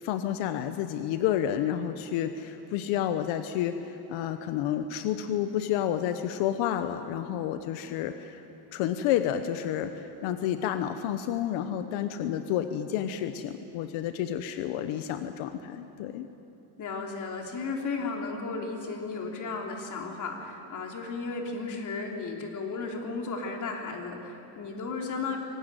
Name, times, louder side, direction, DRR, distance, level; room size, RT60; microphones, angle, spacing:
voice 1, 0.0-8.4 8.7-16.3, left 10 dB, 90° left, 9 dB, 1.2 m, -30 dB
voice 2, 16.8-25.4, left 4 dB, 40° left, 2 dB, 3.4 m, -34 dB
23.5 x 19.0 x 9.1 m, 3.0 s
cardioid pair, 145°, 46 cm